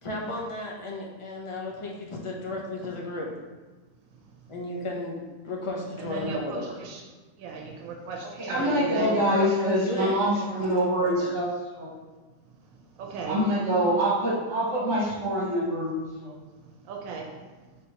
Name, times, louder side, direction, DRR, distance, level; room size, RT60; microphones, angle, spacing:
voice 1, 0.0-3.3 4.5-5.2 5.4-6.8 8.6-10.6 10.9-11.4, left 2 dB, 40° left, -1 dB, 0.5 m, -34 dB
voice 2, 6.0-7.0 7.4-9.3 13.0-13.4 16.9-17.3, right 4 dB, 90° right, 2 dB, 1.0 m, -36 dB
voice 3, 8.3-11.9 13.2-15.9 16.2-16.4, equal, 60° right, -7 dB, 1.2 m, -25 dB
4.3 x 3.5 x 2.8 m, 1.3 s
omnidirectional pair, 1.4 m